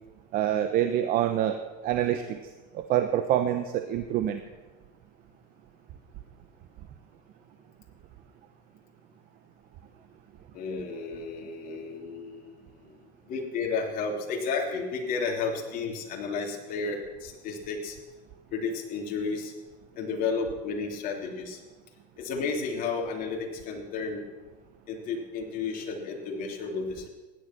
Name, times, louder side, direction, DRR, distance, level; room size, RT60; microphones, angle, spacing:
voice 1, 0.3-2.4 2.7-4.4, right 11 dB, 45° right, 8 dB, 0.9 m, -26 dB
voice 2, 10.5-12.5 13.3-17.9 18.5-19.5 19.9-21.6 22.2-24.2 24.9-27.1, left 4 dB, 45° left, 0 dB, 3.3 m, -32 dB
16.5 x 10.5 x 6.0 m, 1.2 s
supercardioid pair, 125°, 21 cm